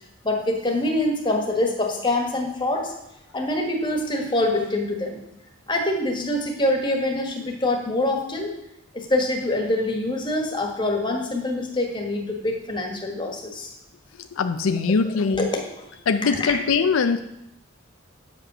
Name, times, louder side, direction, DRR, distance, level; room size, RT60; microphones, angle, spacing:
voice 1, 0.2-2.9 3.3-5.2 5.7-8.5 8.9-13.7 15.4-15.6 16.2-16.6, left 1 dB, 25° left, 1 dB, 1.5 m, -25 dB
voice 2, 14.2-15.5 16.1-17.2, left 5 dB, 80° left, 9 dB, 0.5 m, -22 dB
9.0 x 5.4 x 6.1 m, 0.84 s
head